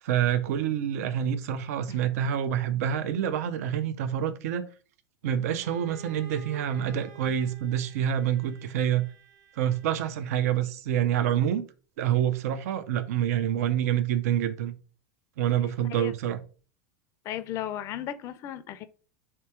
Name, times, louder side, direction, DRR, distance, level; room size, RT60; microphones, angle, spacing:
voice 1, 0.0-4.7 5.2-9.1 9.6-11.6 12.0-14.7 15.4-16.4, right 10 dB, 80° right, 0.5 m, -27 dB
Bowed string instrument, 5.5-10.3, right 7 dB, 45° right, 0.8 m, -51 dB
voice 2, 17.2-18.9, left 11 dB, 40° left, 0.4 m, -35 dB
3.3 x 3.0 x 4.5 m
supercardioid pair, 125°, 8 cm